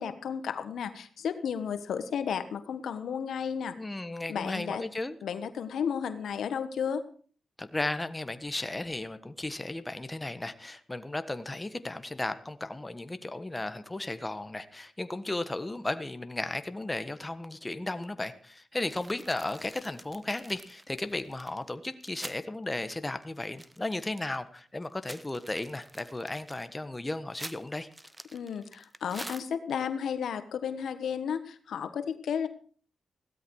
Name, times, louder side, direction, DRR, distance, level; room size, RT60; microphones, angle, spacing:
voice 1, 0.0-3.8 4.3-4.8 5.2-7.0 28.3-32.5, left 7 dB, 85° left, 11 dB, 1.3 m, -33 dB
voice 2, 3.8-5.2 7.6-27.9, left 2 dB, 20° left, 10 dB, 1.4 m, -35 dB
sound 1, 18.9-22.4 22.8-22.9 23.2-24.4 24.8-29.9, right 1 dB, 15° right, 1.0 m, -47 dB
16.5 x 13.0 x 4.8 m, 0.43 s
cardioid pair, 70°, 0 cm